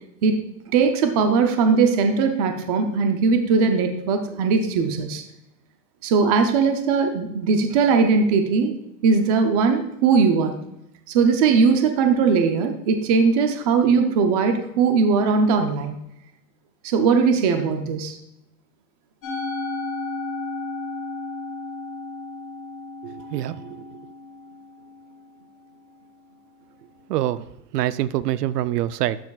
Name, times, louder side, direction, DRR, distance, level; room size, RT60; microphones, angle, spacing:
voice 1, 0.7-5.2 6.0-8.8 9.0-10.5 11.1-16.0 16.8-18.2, right 5 dB, 25° right, 6 dB, 0.5 m, -19 dB
Musical instrument, 19.2-25.6, left 3 dB, 25° left, 1.6 m, -33 dB
voice 2, 23.0-23.7 27.1-27.4 27.7-29.2, right 13 dB, 75° right, 15 dB, 0.6 m, -25 dB
12.0 x 6.9 x 2.4 m, 0.85 s
supercardioid pair, 165°, 49 cm